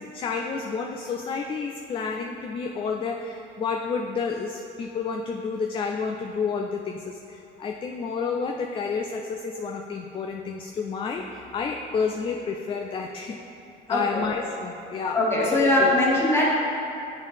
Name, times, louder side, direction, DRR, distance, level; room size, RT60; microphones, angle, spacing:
voice 1, 0.0-13.4 13.9-16.0, left 5 dB, 30° left, 3 dB, 0.3 m, -30 dB
voice 2, 13.9-14.3 15.1-16.5, left 1 dB, 15° left, -6 dB, 1.5 m, -21 dB
8.1 x 3.7 x 3.4 m, 2.7 s
cardioid pair, 95°, 19 cm